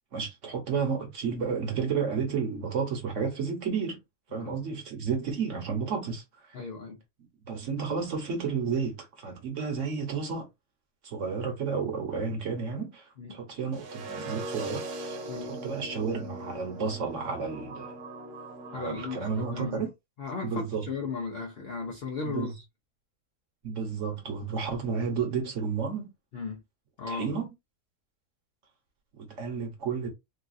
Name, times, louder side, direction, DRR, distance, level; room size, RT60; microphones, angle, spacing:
voice 1, 0.1-4.0 4.3-6.6 7.5-10.5 11.0-18.0 18.7-19.9 20.4-20.9 22.2-22.5 23.6-26.1 27.1-27.5 29.2-30.1, right 5 dB, 55° right, 1.2 m, -32 dB
voice 2, 6.5-7.0 13.2-13.4 15.3-15.5 18.7-19.9 20.2-22.6 26.3-26.6 27.0-27.4, left 4 dB, 60° left, 0.6 m, -36 dB
sound 1, 13.7-19.7, right 2 dB, 75° right, 1.3 m, -40 dB
3.9 x 2.3 x 2.5 m
omnidirectional pair, 1.7 m